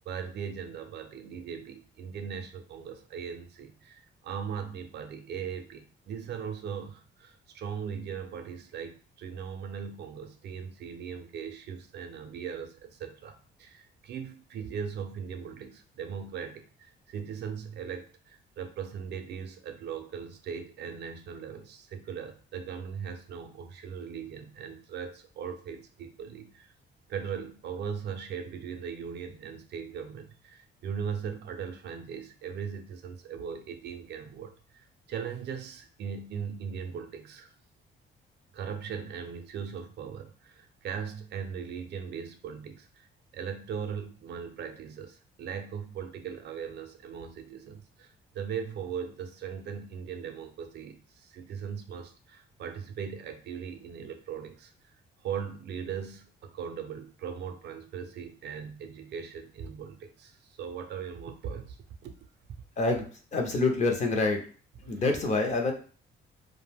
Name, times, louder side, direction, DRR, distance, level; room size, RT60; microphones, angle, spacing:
voice 1, 0.1-26.7 27.1-34.5 35.1-37.5 38.5-43.1 43.3-54.7 55.2-61.8 62.0-62.1 64.8-65.0, right 7 dB, 55° right, 7 dB, 0.4 m, -39 dB
voice 2, 63.3-64.4 64.9-65.7, left 3 dB, 35° left, 3 dB, 0.5 m, -26 dB
2.5 x 2.1 x 3.3 m, 0.40 s
cardioid pair, 155°, 21 cm